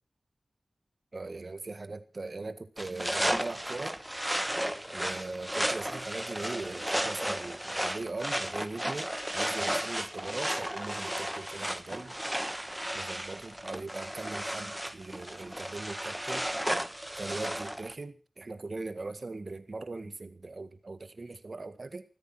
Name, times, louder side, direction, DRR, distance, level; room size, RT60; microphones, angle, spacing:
voice 1, 1.1-4.0 4.9-12.1 12.9-16.4 17.2-22.0, right 3 dB, 55° right, 11 dB, 1.8 m, -40 dB
sound 1, 2.8-17.9, equal, 10° right, 1.4 m, -34 dB
15.0 x 13.5 x 6.1 m, 0.37 s
wide cardioid pair, 55°, 0 cm